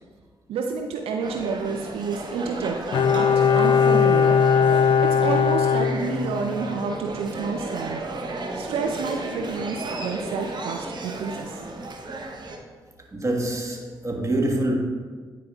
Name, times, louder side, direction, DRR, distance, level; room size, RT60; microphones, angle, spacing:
voice 1, 0.5-2.8 3.1-4.4 4.7-8.0 8.5-11.6, right 5 dB, 80° right, 0.4 m, -30 dB
sound 1, 1.2-12.6, right 2 dB, 50° right, 0.9 m, -34 dB
Bowed string instrument, 2.9-6.7 7.0-7.1, left 7 dB, 55° left, 0.4 m, -19 dB
voice 2, 13.1-14.7, right 1 dB, 30° right, 1.4 m, -25 dB
9.9 x 4.7 x 2.3 m
supercardioid pair, 45°, 10 cm